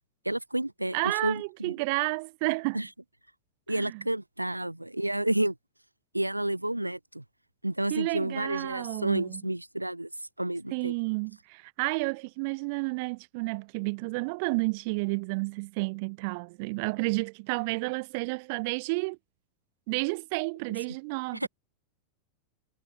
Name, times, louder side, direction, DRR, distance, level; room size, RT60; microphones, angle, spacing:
voice 1, 0.2-1.7 2.7-2.9 3.7-5.5 6.1-7.2 7.6-10.1 10.4-10.9 21.3-21.5, right 1 dB, 85° right, 1.3 m, -30 dB
voice 2, 0.9-2.8 3.7-4.0 7.9-9.4 10.7-19.2 19.9-21.5, right 29 dB, 45° right, 0.9 m, -31 dB
figure-of-eight pair, 90°, 0 cm